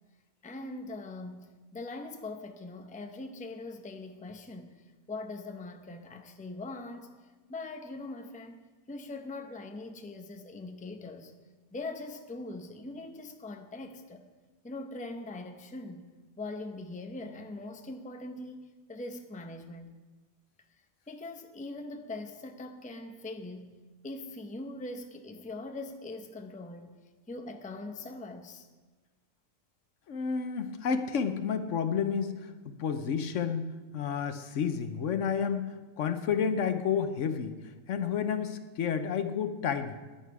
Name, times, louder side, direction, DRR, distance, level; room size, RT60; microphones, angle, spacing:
voice 1, 0.4-8.6 8.9-11.3 11.7-14.2 14.6-16.1 16.4-19.9 21.1-23.8 24.0-27.0 27.3-28.7, left 2 dB, 10° left, 0.6 m, -42 dB
voice 2, 30.1-33.6 33.9-37.5 37.9-40.0, left 7 dB, 70° left, 1.1 m, -30 dB
15.5 x 10.5 x 4.7 m
omnidirectional pair, 1.4 m